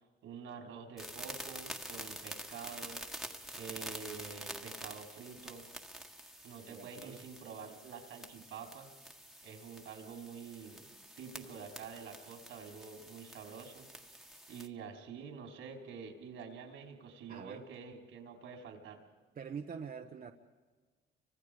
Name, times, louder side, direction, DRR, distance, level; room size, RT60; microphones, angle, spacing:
voice 1, 0.2-3.0 3.5-5.6 6.4-8.9 9.4-10.9 11.2-14.2 14.5-19.0, right 6 dB, 85° right, 3 dB, 4.2 m, -48 dB
sound 1, 1.0-14.7, equal, ahead, 1.8 m, -48 dB
voice 2, 6.7-7.3 17.3-17.6 19.4-20.3, right 6 dB, 45° right, 3 dB, 1.3 m, -45 dB
29.5 x 25.5 x 5.1 m, 1.4 s
cardioid pair, 90°, 20 cm